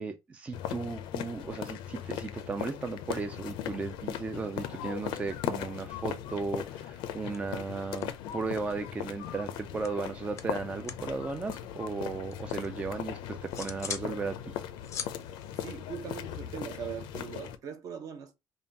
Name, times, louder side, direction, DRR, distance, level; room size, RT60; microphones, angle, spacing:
voice 1, 0.0-14.6, right 4 dB, 15° right, 0.3 m, -35 dB
sound 1, 0.5-17.6, left 10 dB, 90° left, 0.5 m, -38 dB
sound 2, 6.9-7.1 7.3-8.6 8.8-11.1 11.4-12.7 13.1-14.1 14.5-16.6, left 7 dB, 40° left, 0.5 m, -43 dB
voice 2, 15.5-18.3, right 7 dB, 45° right, 0.8 m, -40 dB
5.4 x 2.3 x 2.7 m
cardioid pair, 160°, 8 cm